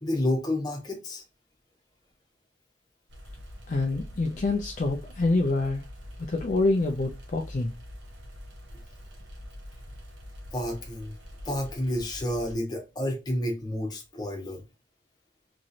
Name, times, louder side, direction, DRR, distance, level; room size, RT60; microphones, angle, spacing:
voice 1, 0.0-1.2 10.5-11.2 11.4-14.6, left 1 dB, 20° left, 0.8 m, -30 dB
sound 1, 3.1-12.6, equal, 75° right, 1.0 m, -44 dB
voice 2, 3.7-5.8 6.3-7.7, left 2 dB, 40° left, 0.4 m, -26 dB
3.0 x 2.8 x 2.6 m
head